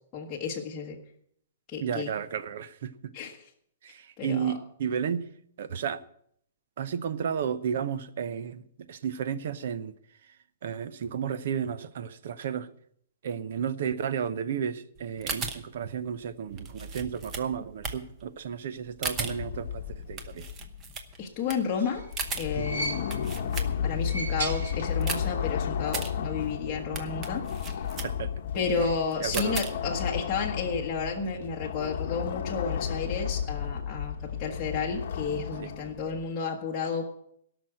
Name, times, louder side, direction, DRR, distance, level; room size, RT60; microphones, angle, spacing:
voice 1, 0.1-1.0 1.7-2.1 3.1-3.4 4.2-4.5 21.2-22.0 22.4-23.3 23.8-27.9 28.5-37.0, left 5 dB, 15° left, 1.4 m, -32 dB
voice 2, 1.8-3.1 3.8-5.3 5.6-6.0 6.8-9.9 10.3-10.4 10.6-12.7 13.2-20.5 22.6-22.8 28.0-28.3 29.2-29.6 35.6-35.7, right 7 dB, 55° right, 0.8 m, -33 dB
sound 1, 15.0-24.1 24.5-30.1, right 5 dB, 15° right, 0.9 m, -38 dB
sound 2, 19.2-21.1 22.0-36.2, left 8 dB, 50° left, 1.0 m, -33 dB
sound 3, 21.5-23.4 23.9-25.3 25.6-25.7 26.8-26.9, right 2 dB, 70° right, 2.2 m, -37 dB
17.5 x 6.2 x 7.6 m
hypercardioid pair, 170°, 0 cm